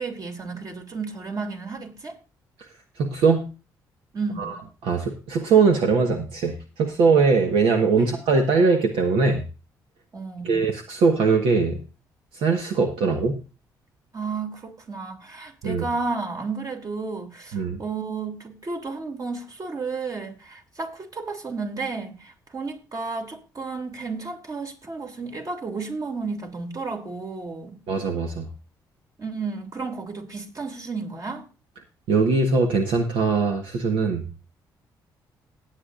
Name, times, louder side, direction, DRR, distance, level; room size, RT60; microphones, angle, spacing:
voice 1, 0.0-2.2 4.1-4.6 7.9-8.1 10.1-10.6 14.1-27.8 29.2-31.5, right 4 dB, 45° right, 2.9 m, -32 dB
voice 2, 3.0-3.5 4.4-4.5 4.8-9.4 10.4-11.8 12.3-13.4 15.6-15.8 17.5-17.8 27.9-28.5 32.1-34.3, right 4 dB, 80° right, 1.4 m, -21 dB
17.5 x 9.0 x 2.6 m
supercardioid pair, 60°, 9 cm